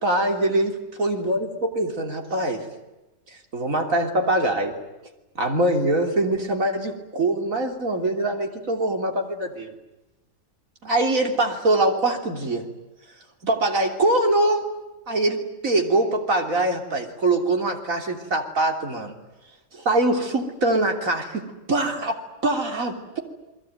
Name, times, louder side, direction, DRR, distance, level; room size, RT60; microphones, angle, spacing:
voice 1, 0.0-2.7 3.5-4.7 5.4-9.7 10.8-12.7 13.4-14.7 15.1-19.1 19.7-21.4 21.7-23.2, right 2 dB, 50° right, 3 dB, 3.6 m, -23 dB
29.5 x 21.5 x 9.3 m, 1.0 s
omnidirectional pair, 1.8 m